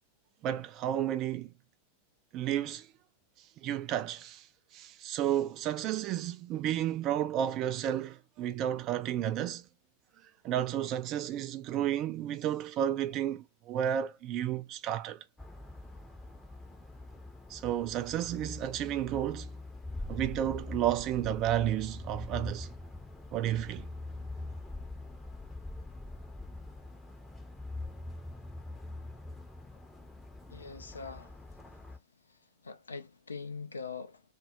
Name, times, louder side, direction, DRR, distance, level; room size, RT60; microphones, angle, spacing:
voice 1, 0.4-1.5 2.3-2.9 3.6-4.5 4.7-9.7 10.4-15.2 17.5-19.5 20.1-22.7 23.3-23.9, right 11 dB, 35° right, 0.4 m, -32 dB
sound 1, 15.4-32.0, left 2 dB, 5° left, 0.6 m, -43 dB
voice 2, 30.5-31.3 32.6-34.2, left 4 dB, 75° left, 0.4 m, -42 dB
2.2 x 2.0 x 3.5 m
figure-of-eight pair, 90°, 0 cm